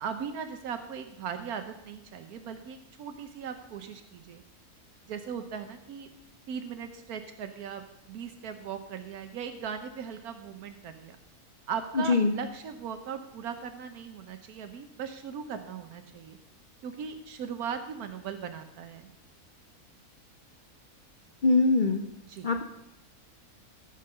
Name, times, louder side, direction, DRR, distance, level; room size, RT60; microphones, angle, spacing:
voice 1, 0.0-4.4 5.1-6.1 6.5-11.2 11.7-16.4 16.8-19.1 22.2-22.5, right 7 dB, 80° right, 8 dB, 1.3 m, -38 dB
voice 2, 21.4-22.0 22.4-22.6, left 3 dB, 45° left, 5 dB, 0.6 m, -22 dB
15.0 x 5.3 x 6.6 m, 0.82 s
omnidirectional pair, 1.6 m